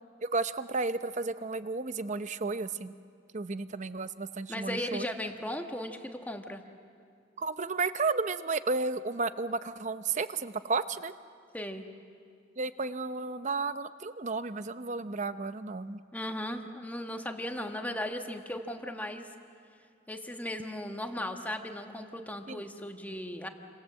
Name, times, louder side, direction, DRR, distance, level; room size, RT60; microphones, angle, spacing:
voice 1, 0.2-2.9 3.3-5.1 7.4-11.1 12.6-16.0 22.5-22.6, right 3 dB, 40° right, 12 dB, 0.7 m, -33 dB
voice 2, 4.5-6.6 11.5-11.9 16.1-19.3 20.1-23.5, left 1 dB, 10° left, 4 dB, 1.4 m, -37 dB
29.0 x 26.0 x 7.6 m, 2.3 s
head